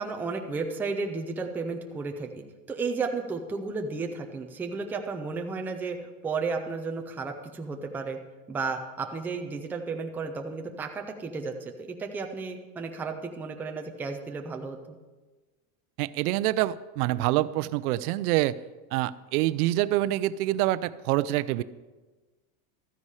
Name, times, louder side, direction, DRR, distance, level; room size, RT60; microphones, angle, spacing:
voice 1, 0.0-6.0 6.2-8.2 8.5-14.8, right 4 dB, 5° right, 3 dB, 0.4 m, -33 dB
voice 2, 16.0-18.6 18.9-21.6, right 16 dB, 85° right, 17 dB, 0.6 m, -26 dB
13.0 x 9.7 x 4.8 m, 1.2 s
supercardioid pair, 160°, 43 cm